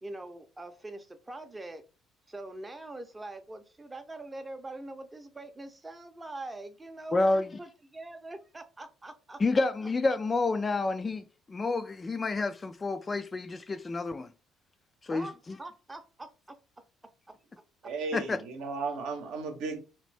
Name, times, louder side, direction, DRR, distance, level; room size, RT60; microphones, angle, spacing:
voice 1, 0.0-1.8 2.3-9.6 15.1-16.3, right 2 dB, 20° right, 0.6 m, -43 dB
voice 2, 7.1-7.5 9.4-14.3 15.0-15.6 18.1-18.4, left 3 dB, 30° left, 0.3 m, -29 dB
voice 3, 17.8-19.8, right 4 dB, 60° right, 0.7 m, -35 dB
3.0 x 2.5 x 3.2 m
figure-of-eight pair, 50°, 0 cm